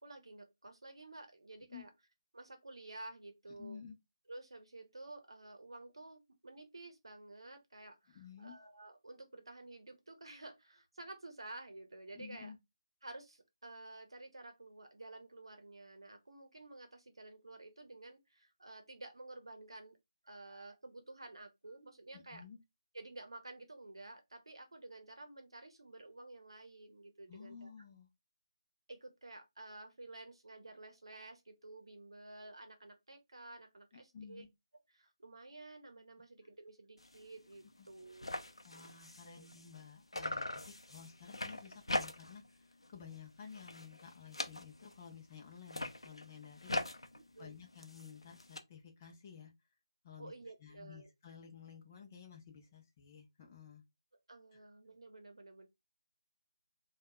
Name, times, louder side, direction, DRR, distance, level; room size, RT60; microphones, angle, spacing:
voice 1, 0.0-1.9 2.3-3.8 4.3-12.5 13.0-20.0 20.2-22.4 22.9-27.7 28.9-34.4 34.9-38.4 39.2-39.5 47.1-47.5 50.2-51.1 54.3-55.7, right 2 dB, 65° right, 0.8 m, -52 dB
voice 2, 3.6-4.0 8.1-8.6 12.1-12.6 22.1-22.6 27.3-28.1 34.1-34.5 37.8-37.9 38.6-47.1 47.4-49.5 50.0-50.3 50.6-53.8 54.5-54.6, left 7 dB, 25° left, 0.7 m, -53 dB
sound 1, 37.0-37.2 37.6-37.7 37.9-39.9 40.1-42.5 42.8-43.2 43.5-45.0 45.6-48.6, left 1 dB, 80° left, 0.6 m, -42 dB
4.5 x 2.3 x 2.3 m
figure-of-eight pair, 155°, 3 cm